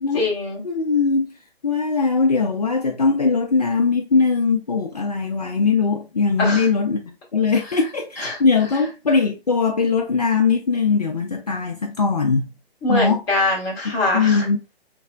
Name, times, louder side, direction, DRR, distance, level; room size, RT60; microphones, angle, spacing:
voice 1, 0.1-0.6 6.4-6.7 8.2-8.4 12.8-14.5, left 2 dB, 10° left, 0.9 m, -23 dB
voice 2, 0.6-1.4 1.6-12.5 12.9-13.2 14.1-14.6, left 4 dB, 40° left, 0.5 m, -20 dB
4.7 x 3.3 x 2.3 m
figure-of-eight pair, 140°, 31 cm